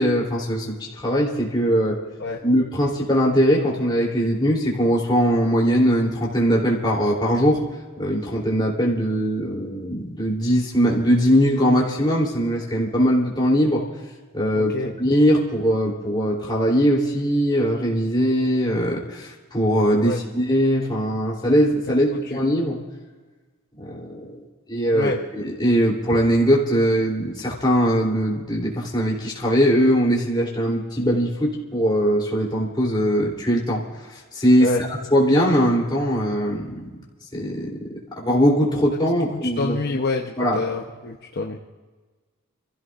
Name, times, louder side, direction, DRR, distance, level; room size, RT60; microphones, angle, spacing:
voice 1, 0.0-2.0 2.4-7.6 8.0-13.8 14.3-22.8 23.8-24.4 24.7-33.8 34.1-36.9 37.3-39.8 40.4-40.6, equal, 20° left, -3 dB, 3.2 m, -21 dB
voice 2, 14.5-14.9 19.9-20.2 21.9-22.0 22.3-22.4 24.9-25.2 34.6-34.8 39.3-41.6, left 3 dB, 50° left, 1 dB, 0.9 m, -27 dB
28.0 x 15.5 x 2.5 m, 1.4 s
head